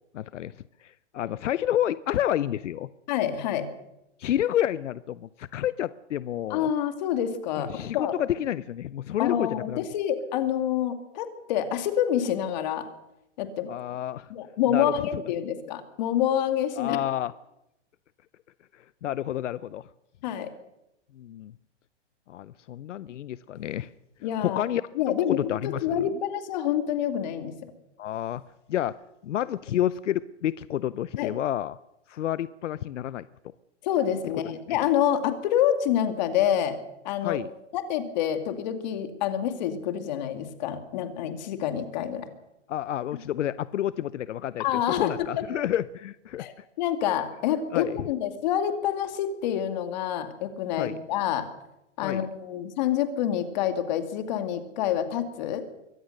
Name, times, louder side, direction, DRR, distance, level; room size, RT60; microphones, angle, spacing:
voice 1, 0.1-0.5 0.8-2.9 4.2-6.7 7.6-9.8 13.7-14.3 14.7-14.9 16.8-17.3 19.0-19.9 21.2-21.5 22.3-23.9 24.4-24.8 25.2-26.2 28.0-28.4 28.7-29.0 29.2-31.8 32.1-33.3 37.2-37.5 42.7-46.5 47.7-48.0 50.8-51.0 52.0-52.3, left 11 dB, 80° left, 17 dB, 0.7 m, -29 dB
voice 2, 3.1-3.7 6.5-8.1 9.2-12.9 13.4-13.7 14.3-17.0 20.2-20.5 24.2-24.6 24.9-27.6 31.2-31.3 33.8-36.8 37.0-37.4 37.7-42.3 44.6-45.4 46.4-51.5 52.0-55.6, left 10 dB, 35° left, 8 dB, 2.3 m, -27 dB
23.5 x 17.5 x 6.6 m, 0.87 s
hypercardioid pair, 160°, 36 cm